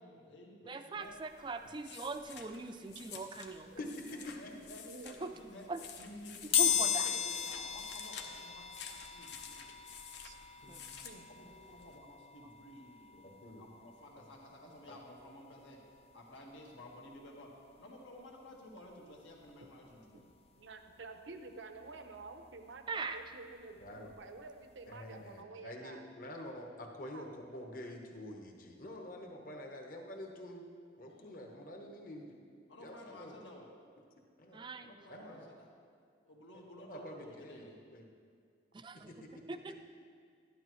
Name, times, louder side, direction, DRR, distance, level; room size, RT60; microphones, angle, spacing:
voice 1, 0.0-1.2 4.1-4.9 5.2-5.7 6.0-9.9 11.3-15.8 16.1-17.5 17.8-20.3 31.1-31.5 32.7-33.7 34.8-35.7 36.2-37.8, left 1 dB, 85° left, -1 dB, 1.7 m, -54 dB
voice 2, 0.6-3.7 5.0-5.3 5.7-5.8 6.5-7.1 10.7-10.8 22.9-23.2 34.5-34.9 38.7-39.1 39.5-39.7, right 3 dB, 25° right, 8 dB, 0.4 m, -41 dB
sound 1, 1.0-12.0, left 7 dB, 70° left, 0.8 m, -52 dB
voice 3, 4.8-5.2 6.5-6.8 7.7-7.8 10.2-10.4 11.0-11.3 20.5-26.1 27.1-27.3, right 3 dB, 85° right, 6 dB, 0.8 m, -50 dB
sound 2, 6.5-17.2 17.7-17.8 18.9-19.0 19.3-21.4 21.7-24.4 24.7-24.9 25.2-25.3, left 9 dB, 30° left, 0.4 m, -38 dB
voice 4, 13.1-13.7 14.8-14.9 23.8-24.1 24.9-30.6 31.0-32.4 32.8-33.3 34.4-34.7 35.1-35.5 36.8-38.0 38.9-39.7, left 1 dB, 50° left, 1 dB, 1.1 m, -47 dB
12.0 x 11.5 x 3.1 m, 2.2 s
head